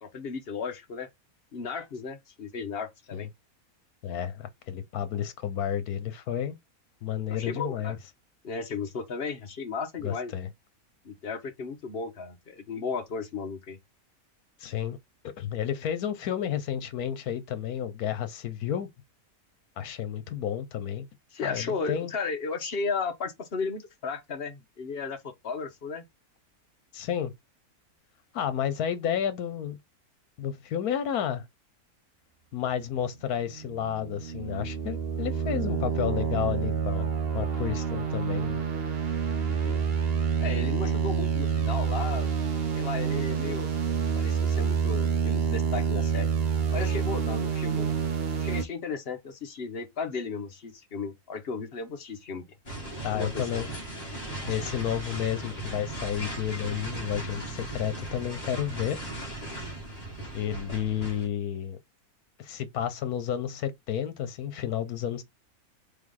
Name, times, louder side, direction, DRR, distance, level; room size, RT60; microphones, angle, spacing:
voice 1, 0.0-1.1 1.5-3.3 7.3-8.0 8.4-10.3 11.0-13.8 21.3-26.0 39.4-39.8 40.4-42.3 42.7-43.7 44.1-46.3 46.7-48.0 48.3-52.5 53.1-53.6, left 5 dB, 45° left, 1.1 m, -35 dB
voice 2, 4.0-6.6 7.0-8.0 10.0-10.5 14.6-15.0 15.2-18.9 19.8-21.1 21.4-22.1 26.9-27.3 28.3-29.8 30.4-31.5 32.5-37.1 37.3-38.6 53.0-53.7 54.5-59.0 60.3-61.8 62.4-65.2, left 9 dB, 85° left, 1.3 m, -31 dB
sound 1, 33.5-48.6, right 7 dB, 45° right, 1.0 m, -28 dB
sound 2, 52.6-61.3, right 1 dB, 25° left, 1.6 m, -37 dB
3.5 x 3.4 x 3.8 m
omnidirectional pair, 1.6 m